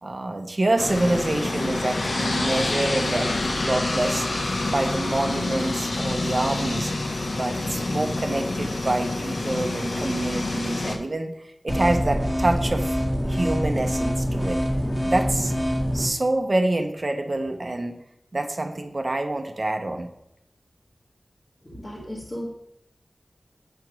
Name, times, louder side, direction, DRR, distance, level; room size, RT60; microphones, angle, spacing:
voice 1, 0.0-4.3 4.7-6.9 7.3-13.0 13.3-14.6 15.0-15.5 15.9-18.0 18.3-20.1, right 2 dB, 45° right, 5 dB, 0.7 m, -26 dB
sound 1, 0.8-11.0, left 2 dB, 75° left, 0.9 m, -27 dB
sound 2, 11.7-16.1, equal, 15° left, 1.6 m, -25 dB
voice 2, 21.6-22.5, equal, 40° left, -6 dB, 1.5 m, -35 dB
7.8 x 3.0 x 6.1 m, 0.79 s
wide cardioid pair, 50°, 0 cm